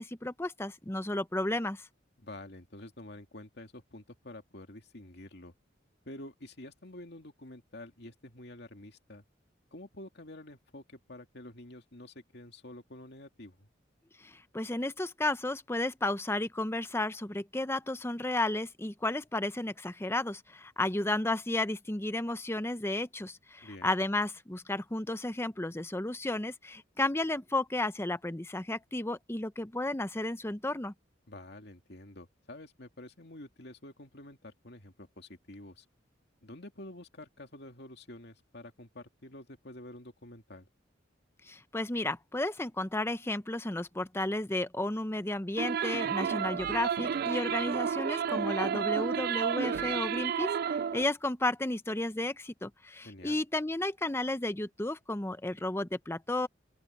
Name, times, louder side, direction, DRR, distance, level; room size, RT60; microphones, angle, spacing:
voice 1, 0.0-1.9 14.2-30.9 41.5-56.5, left 2 dB, 15° left, 0.7 m, -33 dB
voice 2, 2.2-5.5 6.1-9.2 9.7-13.7 23.6-24.0 31.3-35.9 36.4-40.7 53.0-53.4, left 1 dB, 60° left, 2.6 m, -48 dB
sound 1, 45.6-51.0, right 7 dB, 50° right, 0.3 m, -31 dB
open air
head